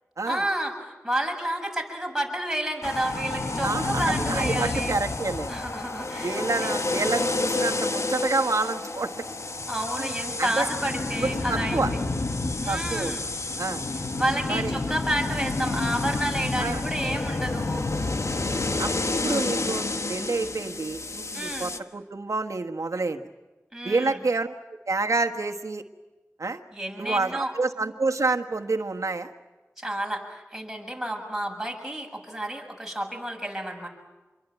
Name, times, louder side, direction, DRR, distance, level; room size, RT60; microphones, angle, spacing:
voice 1, 0.2-4.9 5.5-6.7 9.7-12.0 12.6-13.2 14.2-17.8 21.3-21.7 23.7-24.2 26.7-27.5 29.8-33.9, right 1 dB, 5° right, 1 dB, 7.6 m, -30 dB
sound 1, 2.8-21.8, left 2 dB, 65° left, 1.3 m, -29 dB
voice 2, 3.6-5.5 6.2-9.2 10.0-10.1 10.4-10.7 11.2-11.9 12.7-13.1 13.6-13.8 14.5-14.7 16.6-16.8 18.8-23.2 23.8-24.5 24.8-25.8 26.4-26.6 27.0-29.3, right 3 dB, 85° right, 6 dB, 1.5 m, -28 dB
27.5 x 23.0 x 9.2 m, 1.2 s
wide cardioid pair, 45°, 5 cm